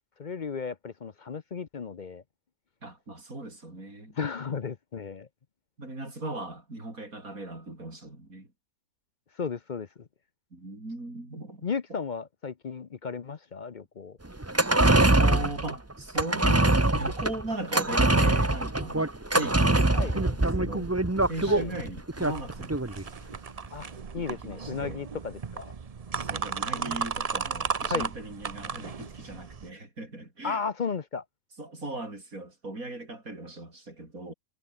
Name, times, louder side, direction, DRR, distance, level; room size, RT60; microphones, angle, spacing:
voice 1, 0.2-2.2 4.1-5.3 9.4-10.1 11.6-14.2 19.9-20.2 21.5-21.7 23.7-23.9 24.1-25.7 27.9-28.1 30.4-31.2, left 5 dB, 40° left, 0.7 m, -34 dB
voice 2, 2.8-4.2 5.8-8.5 10.5-11.7 15.2-16.7 16.9-20.9 21.2-22.8 24.2-25.0 26.3-30.6 31.6-34.3, right 2 dB, 70° right, 7.2 m, -38 dB
sound 1, 14.4-23.0 23.3-23.4, right 2 dB, 10° right, 1.0 m, -23 dB
sound 2, 22.2-29.7, right 5 dB, 35° right, 0.7 m, -35 dB
omnidirectional pair, 1.5 m